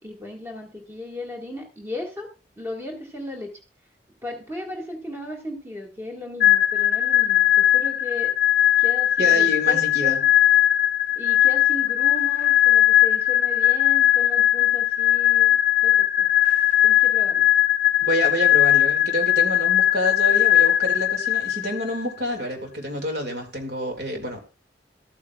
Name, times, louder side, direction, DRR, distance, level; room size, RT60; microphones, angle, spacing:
voice 1, 0.0-2.3 2.6-3.5 4.2-8.3 8.8-10.3 11.1-15.6 15.8-16.3 16.8-17.5, left 2 dB, 15° right, 1 dB, 1.8 m, -36 dB
sound 1, 6.4-22.0, left 12 dB, 45° left, 0.7 m, -19 dB
voice 2, 9.2-10.2 18.0-24.4, equal, 65° right, 4 dB, 2.2 m, -28 dB
13.5 x 8.6 x 2.3 m, 0.32 s
head